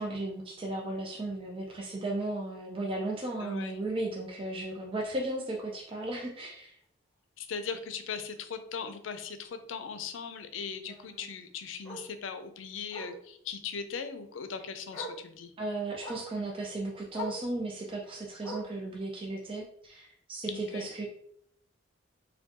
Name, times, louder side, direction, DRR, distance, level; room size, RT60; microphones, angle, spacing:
voice 1, 0.0-6.8 10.9-11.2 15.6-21.1, right 2 dB, 30° right, -1 dB, 0.5 m, -35 dB
voice 2, 3.4-3.8 7.4-15.5 20.5-20.9, left 6 dB, 90° left, 9 dB, 0.5 m, -39 dB
Bark, 5.4-5.6 6.0-6.1 6.5-6.6 6.8-6.9 8.3-8.4 10.9-11.0 11.8-12.1 12.9-13.2 14.4-14.5 14.9-15.2 16.0-16.3 17.1-17.5 18.4-18.8 19.8-19.9, equal, 15° left, 1.4 m, -41 dB
4.3 x 2.2 x 2.9 m, 0.68 s
head